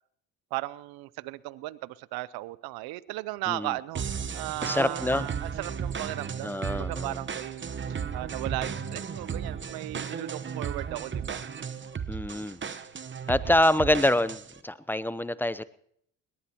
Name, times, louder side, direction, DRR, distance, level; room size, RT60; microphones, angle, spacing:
voice 1, 0.5-4.0 4.3-11.4 12.6-12.8, right 19 dB, 75° right, 20 dB, 0.6 m, -36 dB
sound 1, 3.9-14.6, right 6 dB, 30° right, 1.0 m, -35 dB
voice 2, 4.6-5.3 6.4-7.2 12.1-12.6 13.3-15.6, left 1 dB, 5° left, 16 dB, 0.7 m, -26 dB
21.5 x 18.5 x 2.9 m, 0.68 s
supercardioid pair, 70°, 37 cm